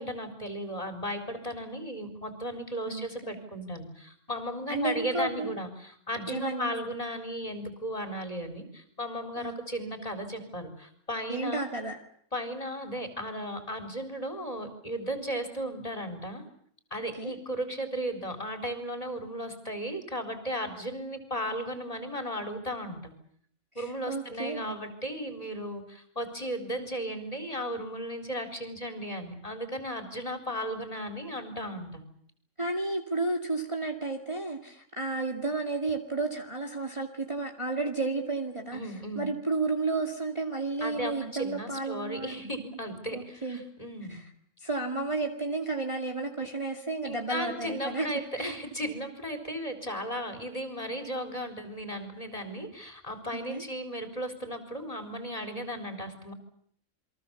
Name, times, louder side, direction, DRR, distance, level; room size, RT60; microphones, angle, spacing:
voice 1, 0.0-11.6 12.3-16.4 16.9-23.1 23.7-32.0 38.7-39.3 40.8-44.2 46.4-46.5 47.0-56.3, equal, 25° left, 5 dB, 4.2 m, -35 dB
voice 2, 2.8-3.4 4.7-5.6 6.3-6.7 9.4-9.6 11.3-12.0 17.2-17.3 23.8-24.8 32.6-38.8 39.2-42.6 43.1-43.6 44.1-44.2 44.6-48.1 48.4-48.5 53.5-53.6, right 3 dB, 20° right, 2 dB, 2.2 m, -32 dB
29.0 x 23.0 x 7.1 m, 0.63 s
omnidirectional pair, 1.5 m